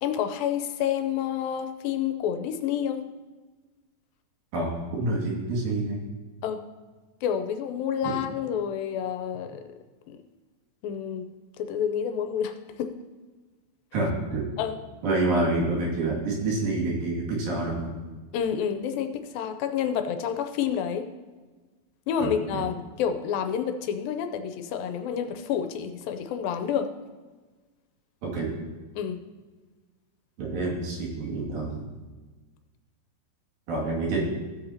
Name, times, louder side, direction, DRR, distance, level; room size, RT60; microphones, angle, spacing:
voice 1, 0.0-3.0 6.4-6.6 7.2-9.6 10.1-10.2 10.8-11.3 11.6-12.9 14.6-14.8 18.3-21.1 22.1-26.9 29.0-29.2, left 8 dB, 85° left, 7 dB, 2.4 m, -29 dB
voice 2, 4.5-6.0 8.0-8.2 13.9-14.5 15.0-17.9 22.2-22.6 28.2-28.6 30.4-31.9 33.7-34.2, right 2 dB, 80° right, -3 dB, 4.0 m, -28 dB
15.5 x 8.0 x 2.8 m, 1.3 s
omnidirectional pair, 4.1 m